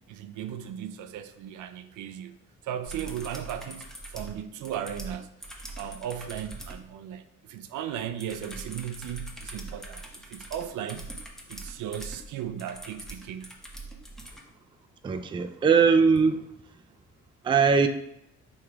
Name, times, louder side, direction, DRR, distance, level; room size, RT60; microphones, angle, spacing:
voice 1, 0.1-2.4 2.6-5.3 5.8-11.1 11.5-13.5, right 9 dB, 75° right, 0.5 m, -36 dB
sound 1, 2.9-6.8 8.2-14.4 16.2-16.3, right 2 dB, ahead, 0.7 m, -42 dB
voice 2, 15.0-16.4 17.4-17.9, right 5 dB, 15° right, 0.3 m, -21 dB
3.6 x 3.0 x 4.6 m
cardioid pair, 90°, 30 cm